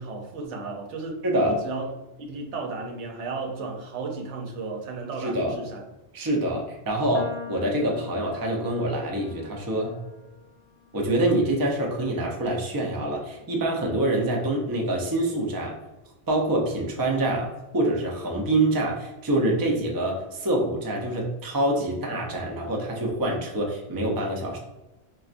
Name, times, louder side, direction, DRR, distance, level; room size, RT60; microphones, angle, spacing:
voice 1, 0.0-1.9 2.2-5.8, right 3 dB, 70° right, 1 dB, 1.0 m, -34 dB
voice 2, 1.2-1.6 5.2-5.6 6.1-10.0 10.9-15.8 16.3-24.6, right 1 dB, 30° right, -1 dB, 0.4 m, -26 dB
sound 1, 7.1-13.5, left 7 dB, 85° left, 0.9 m, -44 dB
4.2 x 2.4 x 2.5 m, 1.0 s
omnidirectional pair, 1.3 m